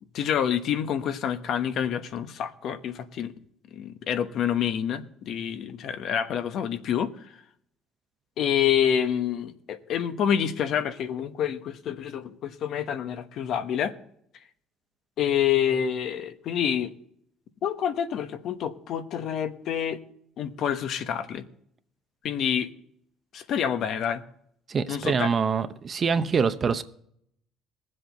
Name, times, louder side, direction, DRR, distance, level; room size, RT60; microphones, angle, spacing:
voice 1, 0.0-3.3 3.7-7.1 8.4-13.9 15.2-16.9 17.6-20.0 20.4-21.4 22.2-22.7 23.3-24.2 24.9-25.3, left 9 dB, 60° left, 1.1 m, -27 dB
voice 2, 24.7-26.8, right 5 dB, 35° right, 0.8 m, -25 dB
20.0 x 7.7 x 3.9 m
cardioid pair, 120°, 0 cm